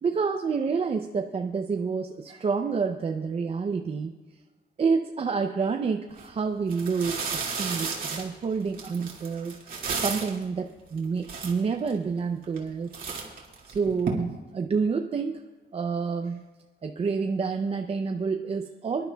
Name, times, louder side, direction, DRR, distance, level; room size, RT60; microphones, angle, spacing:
voice 1, 0.0-4.1 4.8-12.9 13.7-15.4 15.7-16.4 16.8-19.1, right 5 dB, 35° right, 4 dB, 0.5 m, -28 dB
sound 1, 6.1-6.2 6.7-10.4 11.0-11.1 11.2-11.9 12.4-12.7 12.9-14.1, right 5 dB, 55° right, 2.1 m, -33 dB
24.0 x 11.5 x 2.3 m, 1.3 s
wide cardioid pair, 180°, 18 cm